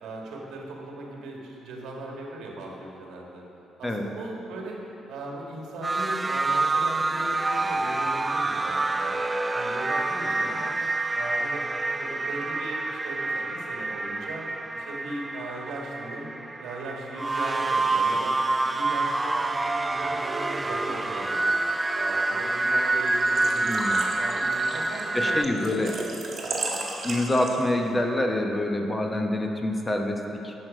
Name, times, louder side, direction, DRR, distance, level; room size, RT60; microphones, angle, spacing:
voice 1, 0.0-3.4 3.8-4.8 5.1-9.3 9.5-10.7 11.1-11.7 11.9-14.5 14.7-16.3 16.6-21.5 21.9-23.8 24.2-26.0, right 2 dB, 85° right, -1 dB, 1.7 m, -38 dB
sound 1, 5.8-25.5, right 2 dB, 20° right, 0.3 m, -27 dB
Engine / Trickle dribble / Fill (with liquid), 23.0-27.8, right 3 dB, 45° right, 1.6 m, -34 dB
voice 2, 23.6-24.0 25.1-25.9 27.0-30.5, left 1 dB, 20° left, 2 dB, 1.0 m, -26 dB
11.0 x 6.3 x 5.3 m, 3.0 s
cardioid pair, 90°, 0 cm